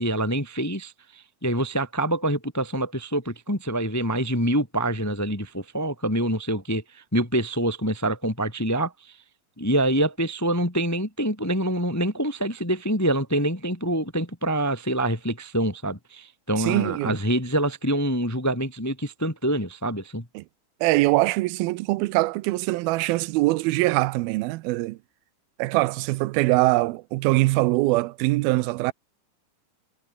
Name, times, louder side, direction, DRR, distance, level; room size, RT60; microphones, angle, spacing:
voice 1, 0.0-9.2 9.6-20.2, right 1 dB, 10° left, 1.0 m, -26 dB
voice 2, 16.6-17.1 20.4-20.5 20.8-25.0 25.6-28.9, right 20 dB, 85° right, 2.5 m, -23 dB
omnidirectional pair, 4.3 m